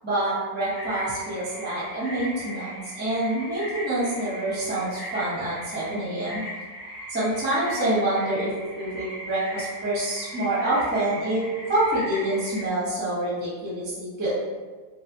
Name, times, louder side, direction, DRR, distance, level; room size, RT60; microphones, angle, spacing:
voice 1, 0.0-6.4 7.1-8.5 8.8-11.4 11.7-14.3, right 1 dB, 10° right, -8 dB, 0.4 m, -26 dB
sound 1, 0.7-12.7, equal, 45° left, 1.2 m, -38 dB
3.2 x 2.2 x 2.6 m, 1.4 s
omnidirectional pair, 2.0 m